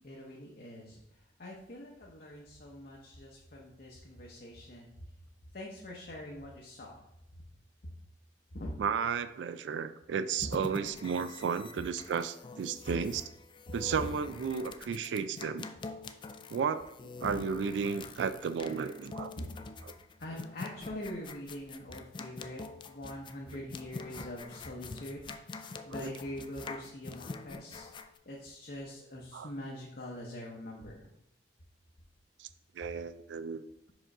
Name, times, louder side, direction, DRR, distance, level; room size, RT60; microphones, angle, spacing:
voice 1, 0.0-1.0 1.4-4.9 5.5-7.0 8.5-8.7 10.4-10.5 19.4-19.5 20.2-25.2 25.8-27.9 28.2-31.1, left 1 dB, 55° left, -2 dB, 0.8 m, -43 dB
voice 2, 8.8-13.2 13.7-15.6 16.5-16.9 17.2-19.3 23.5-23.6 25.9-26.1 29.3-29.5 32.4-32.5 32.8-33.6, right 6 dB, 80° right, 12 dB, 0.3 m, -33 dB
sound 1, 10.3-28.2, left 3 dB, 25° left, 0.3 m, -45 dB
5.0 x 3.7 x 5.4 m, 0.83 s
head